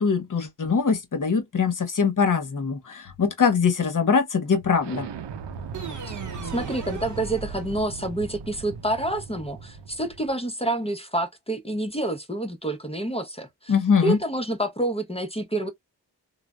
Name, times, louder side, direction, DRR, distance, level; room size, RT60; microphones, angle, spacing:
voice 1, 0.0-5.1 13.7-14.2, left 6 dB, 50° left, 0.8 m, -22 dB
Explosion, 4.8-10.3, right 5 dB, 80° right, 0.6 m, -38 dB
sound 1, 5.7-8.1, right 5 dB, 45° right, 0.8 m, -38 dB
voice 2, 6.0-13.7 14.0-15.7, right 1 dB, 15° left, 0.6 m, -28 dB
3.2 x 2.0 x 2.3 m
cardioid pair, 45°, 42 cm